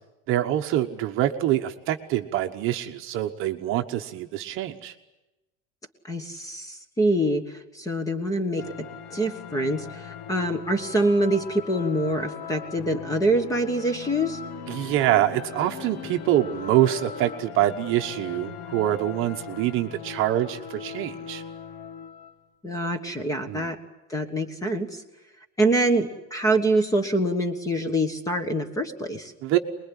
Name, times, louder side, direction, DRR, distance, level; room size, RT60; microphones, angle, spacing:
voice 1, 0.3-4.9 14.7-21.4 23.5-23.7 29.4-29.6, right 13 dB, 35° right, 5 dB, 1.1 m, -25 dB
voice 2, 6.1-14.4 22.6-23.8 24.1-25.0 25.6-29.3, right 1 dB, 10° left, 9 dB, 1.4 m, -25 dB
sound 1, 8.6-22.4, left 7 dB, 45° left, 1.1 m, -39 dB
24.0 x 21.0 x 9.9 m, 1.0 s
cardioid pair, 180°, 35 cm